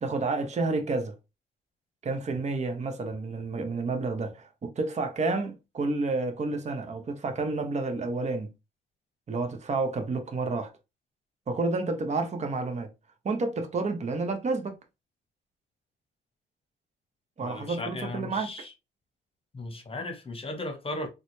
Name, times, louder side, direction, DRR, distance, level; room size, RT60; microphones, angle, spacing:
voice 1, 0.0-1.1 2.0-8.5 9.3-10.7 11.5-12.9 13.2-14.8 17.4-18.5, right 3 dB, 35° right, 0.8 m, -30 dB
voice 2, 17.4-18.7 19.5-21.1, left 2 dB, 30° left, 1.0 m, -36 dB
3.9 x 2.3 x 3.0 m
cardioid pair, 90°, 20 cm